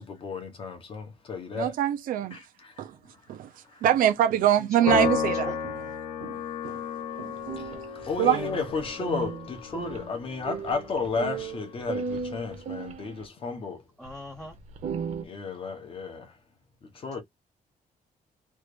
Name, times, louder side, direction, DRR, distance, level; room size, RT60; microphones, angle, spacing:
voice 1, 0.0-1.7 2.3-2.7 3.7-3.8 7.2-13.8 15.2-16.3 16.9-17.2, left 5 dB, 40° left, 1.0 m, -33 dB
voice 2, 1.5-2.4 2.8-2.9 3.3-3.5 3.8-5.7 6.2-6.3 6.6-6.7 7.2-7.3 8.2-8.5, right 11 dB, 75° right, 0.6 m, -24 dB
Piano, 4.9-11.4, left 7 dB, 65° left, 1.1 m, -33 dB
voice 3, 5.4-5.9 14.0-14.6, equal, 5° left, 0.6 m, -40 dB
sound 1, 7.4-13.2 14.1-14.2 14.6-15.2, right 6 dB, 55° right, 0.8 m, -36 dB
3.2 x 2.5 x 3.2 m
cardioid pair, 175°, 14 cm